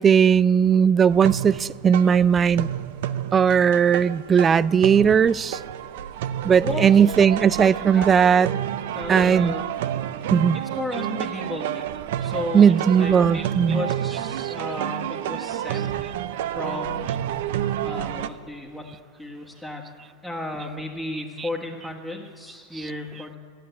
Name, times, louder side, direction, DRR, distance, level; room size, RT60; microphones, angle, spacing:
voice 1, 0.0-2.7 3.3-5.6 6.4-8.5 9.1-9.5 10.3-10.6 12.5-13.8, right 7 dB, 25° right, 0.3 m, -18 dB
sound 1, 1.1-18.3, right 11 dB, 70° right, 0.6 m, -30 dB
voice 2, 7.6-8.1 8.9-9.7 10.7-11.9 12.2-15.9 16.5-17.5 17.8-19.8 20.2-23.4, left 2 dB, 5° left, 1.6 m, -34 dB
13.0 x 8.5 x 9.2 m
hypercardioid pair, 95°, 0 cm